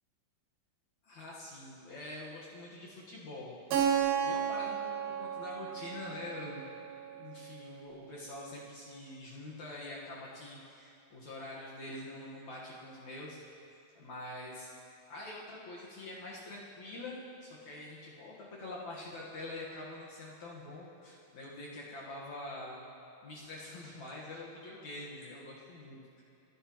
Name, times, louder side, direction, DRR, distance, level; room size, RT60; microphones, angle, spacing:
voice 1, 1.0-3.9 4.2-6.6 7.0-13.4 14.0-14.7 15.1-22.8 23.2-26.2, left 2 dB, 60° left, -5 dB, 2.7 m, -45 dB
Keyboard (musical), 3.7-8.3, right 8 dB, 80° right, 2.8 m, -34 dB
29.5 x 11.0 x 3.1 m, 2.7 s
omnidirectional pair, 4.1 m